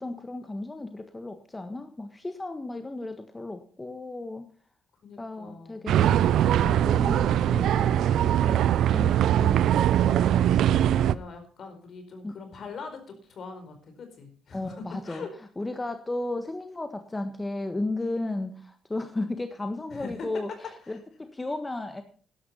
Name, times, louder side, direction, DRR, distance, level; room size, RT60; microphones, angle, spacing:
voice 1, 0.0-4.5 5.2-6.2 6.6-10.4 12.2-12.3 14.5-15.3 15.6-22.0, left 2 dB, 15° left, 8 dB, 1.5 m, -34 dB
voice 2, 5.0-5.9 11.0-15.3 19.9-20.3 20.9-21.0, left 4 dB, 55° left, 7 dB, 4.6 m, -42 dB
sound 1, 5.9-11.1, right 11 dB, 75° right, 0.5 m, -21 dB
12.5 x 11.5 x 5.6 m, 0.42 s
cardioid pair, 90°, 0 cm